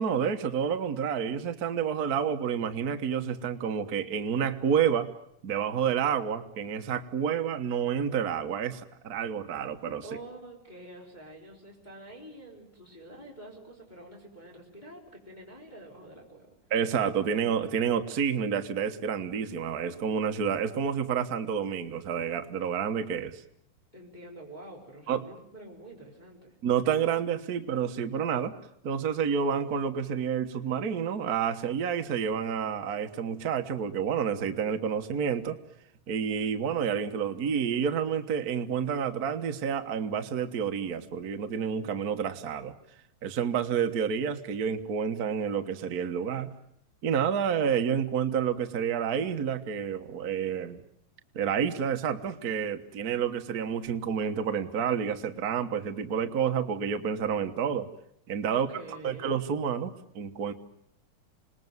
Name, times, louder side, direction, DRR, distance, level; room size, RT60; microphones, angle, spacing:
voice 1, 0.0-5.1 5.4-10.0 16.7-23.4 25.1-25.3 26.6-28.5 28.8-35.6 36.1-42.7 43.2-46.5 47.0-50.8 51.3-57.9 58.3-58.7 59.0-60.5, right 7 dB, 75° right, 7 dB, 0.8 m, -29 dB
voice 2, 10.0-16.5 23.9-26.6 58.5-59.3, right 1 dB, 15° left, -2 dB, 4.2 m, -47 dB
27.5 x 20.0 x 9.4 m, 0.74 s
omnidirectional pair, 3.7 m